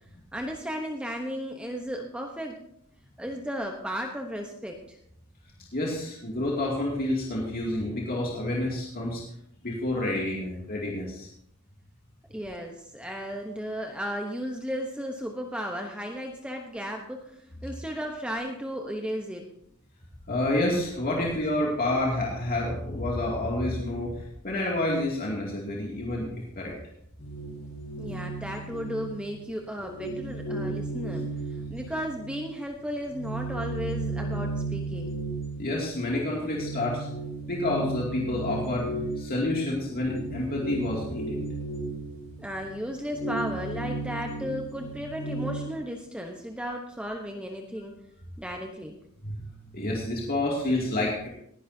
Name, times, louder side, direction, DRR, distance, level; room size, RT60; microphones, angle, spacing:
voice 1, 0.3-2.7 3.2-5.0 12.3-19.5 28.0-35.1 42.4-48.0 48.4-49.0, equal, 5° right, 2 dB, 1.0 m, -35 dB
voice 2, 5.7-9.2 9.6-11.3 20.3-26.7 35.6-37.1 37.5-38.9 39.2-41.4 49.2-49.4 49.7-51.3, left 1 dB, 45° left, -3 dB, 2.5 m, -29 dB
sound 1, 27.2-29.5 29.8-32.5 32.9-45.8, right 2 dB, 65° left, 5.7 m, -35 dB
19.5 x 11.0 x 2.8 m, 0.71 s
head